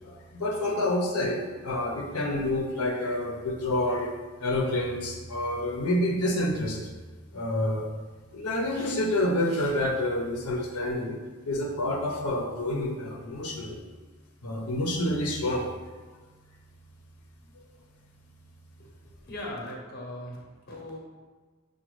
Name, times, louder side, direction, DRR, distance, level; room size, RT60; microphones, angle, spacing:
voice 1, 0.0-4.1 4.4-6.8 7.3-7.9 8.3-11.2 11.5-13.8 14.4-15.7, left 1 dB, 90° left, 0 dB, 0.6 m, -28 dB
voice 2, 19.2-21.0, left 1 dB, 45° left, -2 dB, 0.8 m, -39 dB
5.9 x 2.2 x 3.1 m, 1.3 s
head